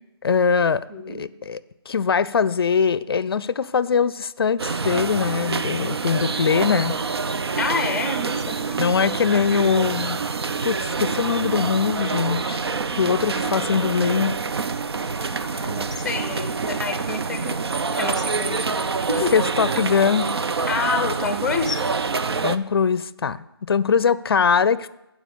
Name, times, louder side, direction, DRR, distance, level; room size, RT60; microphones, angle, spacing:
voice 1, 0.2-1.6 1.9-7.0 8.8-10.2 10.6-12.6 13.0-14.3 19.3-20.3 22.4-24.9, left 6 dB, 65° left, 18 dB, 0.4 m, -22 dB
voice 2, 0.9-1.2 7.5-8.8 15.3-17.6 17.9-18.6 19.1-19.3 20.7-21.8, left 4 dB, 5° left, 7 dB, 0.7 m, -28 dB
sound 1, 4.6-22.6, right 4 dB, 75° right, 0.7 m, -26 dB
11.5 x 4.8 x 6.8 m, 0.89 s
hypercardioid pair, 160°, 13 cm